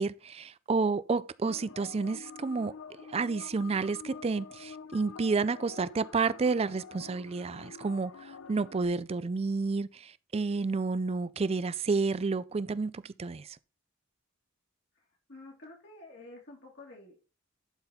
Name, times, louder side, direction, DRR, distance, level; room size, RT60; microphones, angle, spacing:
voice 1, 0.0-13.6, right 4 dB, 30° right, 0.4 m, -30 dB
sound 1, 1.5-8.9, left 6 dB, 85° left, 0.6 m, -47 dB
voice 2, 15.0-17.2, left 2 dB, 60° left, 2.4 m, -50 dB
11.5 x 4.2 x 4.3 m
head